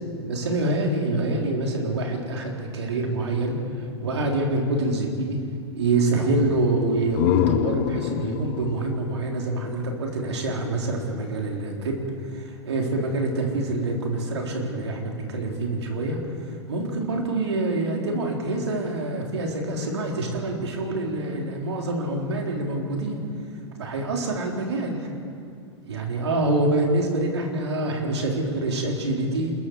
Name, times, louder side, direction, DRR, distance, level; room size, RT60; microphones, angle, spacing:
voice 1, 0.2-5.4 5.7-23.2 23.8-25.1 25.9-29.5, right 2 dB, 70° right, 1 dB, 3.8 m, -26 dB
sound 1, 6.8-10.5, left 18 dB, 45° left, 0.5 m, -27 dB
27.5 x 21.5 x 4.8 m, 2.3 s
figure-of-eight pair, 95°, 15 cm